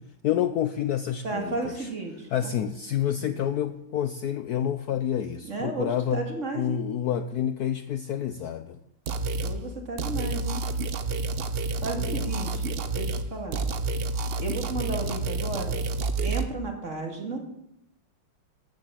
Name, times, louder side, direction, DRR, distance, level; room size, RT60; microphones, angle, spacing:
voice 1, 0.2-1.9 2.3-6.2 6.5-8.8 12.0-12.3, left 10 dB, 70° left, 11 dB, 1.0 m, -28 dB
voice 2, 1.2-2.5 3.2-3.4 5.5-6.8 9.4-10.6 11.8-13.6 14.4-15.8 16.2-17.4, right 2 dB, 40° right, 3 dB, 2.4 m, -33 dB
sound 1, 9.1-9.6 10.0-13.3 13.5-16.4, right 3 dB, 85° right, 0.5 m, -29 dB
14.0 x 7.7 x 7.4 m, 0.81 s
omnidirectional pair, 2.1 m